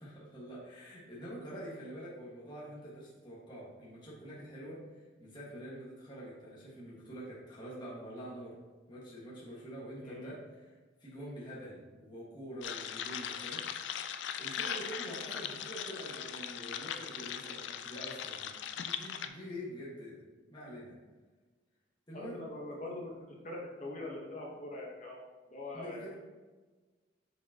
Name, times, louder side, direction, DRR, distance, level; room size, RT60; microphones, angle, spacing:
voice 1, 0.0-8.6 8.9-10.7 11.0-13.6 14.4-20.2 20.5-21.0 22.1-22.4 25.7-26.2, equal, 25° left, -7 dB, 1.6 m, -46 dB
sound 1, 12.6-19.3, left 9 dB, 70° left, 0.4 m, -39 dB
voice 2, 22.1-26.1, left 2 dB, 40° left, -2 dB, 1.0 m, -43 dB
6.6 x 5.2 x 2.9 m, 1.3 s
head